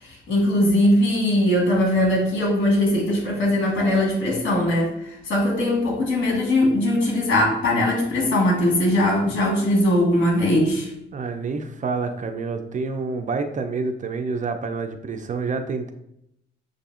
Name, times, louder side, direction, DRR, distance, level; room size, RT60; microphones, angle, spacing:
voice 1, 0.0-10.9, left 1 dB, 70° left, -2 dB, 1.6 m, -20 dB
voice 2, 11.1-15.9, right 4 dB, 40° right, 7 dB, 0.5 m, -28 dB
6.7 x 2.6 x 2.4 m, 0.78 s
cardioid pair, 90°, 20 cm